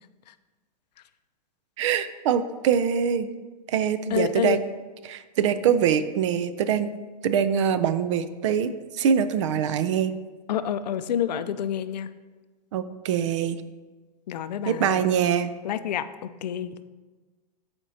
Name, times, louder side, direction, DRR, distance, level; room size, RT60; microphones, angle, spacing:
voice 1, 1.8-3.3 3.7-4.6 5.0-7.0 7.2-10.1 12.7-13.6 14.7-15.5, right 8 dB, 45° right, 12 dB, 0.4 m, -24 dB
voice 2, 4.1-4.6 10.5-12.1 14.3-15.0 15.6-16.8, left 9 dB, 75° left, 12 dB, 0.5 m, -28 dB
13.0 x 4.4 x 2.8 m, 1.3 s
supercardioid pair, 155°, 21 cm